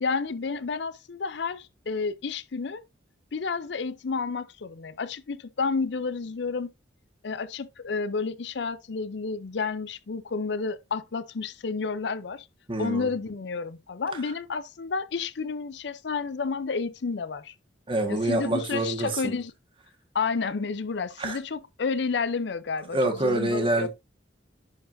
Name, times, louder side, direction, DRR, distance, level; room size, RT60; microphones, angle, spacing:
voice 1, 0.0-2.8 3.3-6.7 7.2-12.5 12.8-17.5 18.1-19.5 20.1-23.9, left 4 dB, 70° left, 0.5 m, -30 dB
voice 2, 12.7-13.1 14.1-14.3 17.9-19.4 21.2-21.4 22.9-23.9, right 2 dB, 30° right, 1.4 m, -27 dB
10.5 x 4.7 x 2.6 m
head